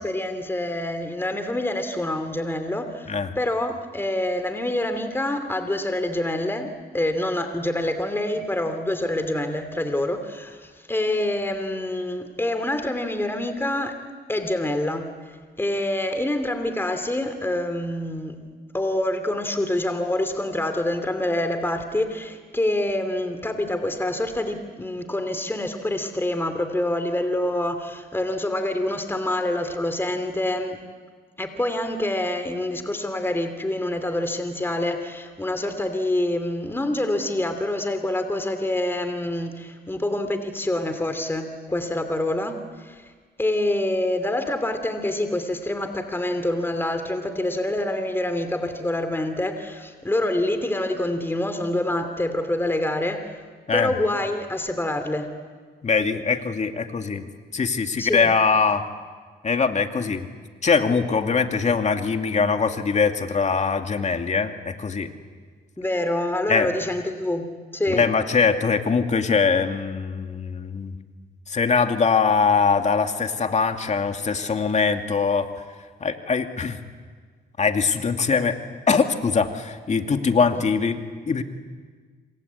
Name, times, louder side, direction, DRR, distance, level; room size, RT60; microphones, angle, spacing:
voice 1, 0.0-14.0 14.3-18.4 18.7-30.8 31.4-43.1 43.4-53.4 53.7-55.3 58.0-58.3 65.8-68.1 80.5-80.6, left 1 dB, 10° left, 8 dB, 2.9 m, -26 dB
voice 2, 55.8-57.2 57.5-58.8 59.4-60.3 60.6-65.1 66.5-66.7 67.9-70.9 71.5-75.5 76.0-76.8 77.6-78.6 78.9-81.4, left 5 dB, 40° left, 5 dB, 2.5 m, -22 dB
27.5 x 26.0 x 8.4 m, 1.6 s
cardioid pair, 75°, 18 cm